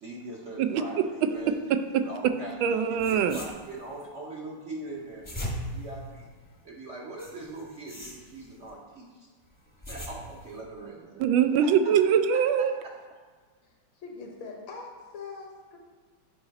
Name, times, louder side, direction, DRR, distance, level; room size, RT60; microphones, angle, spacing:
voice 1, 0.0-1.7 2.0-6.3 6.6-9.3 9.9-11.7 12.8-12.9, right 2 dB, 55° right, -2 dB, 0.8 m, -42 dB
voice 2, 1.7-2.1 2.6-3.4 11.2-12.7, right 8 dB, 85° right, 9 dB, 1.4 m, -23 dB
sound 1, 2.7-2.8 3.0-4.0 5.0-6.6 7.2-8.7 9.5-10.6, equal, 15° left, 0.7 m, -40 dB
voice 3, 14.0-15.8, left 4 dB, 75° left, 0 dB, 1.9 m, -42 dB
7.9 x 4.8 x 4.0 m, 1.4 s
omnidirectional pair, 2.1 m